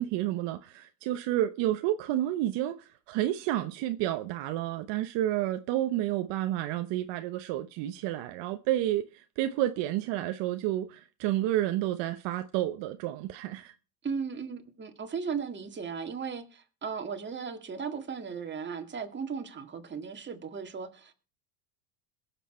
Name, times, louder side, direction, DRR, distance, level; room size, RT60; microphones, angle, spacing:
voice 1, 0.0-13.7, right 13 dB, 60° right, 1.0 m, -30 dB
voice 2, 14.0-21.1, right 6 dB, 20° right, 2.0 m, -36 dB
22.0 x 7.4 x 4.4 m
supercardioid pair, 115°, 49 cm